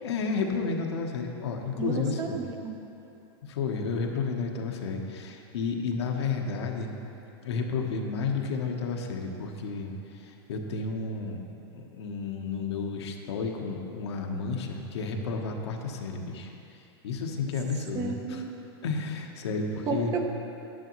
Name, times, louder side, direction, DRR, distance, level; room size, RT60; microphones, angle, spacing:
voice 1, 0.0-2.4 3.5-6.9 7.4-11.4 11.7-16.5 17.0-18.4 18.8-20.1, left 4 dB, 80° left, 2 dB, 1.1 m, -32 dB
voice 2, 1.8-2.8 17.9-18.5 19.9-20.2, right 5 dB, 25° right, 3 dB, 0.7 m, -32 dB
10.5 x 9.8 x 3.1 m, 3.0 s
supercardioid pair, 145°, 14 cm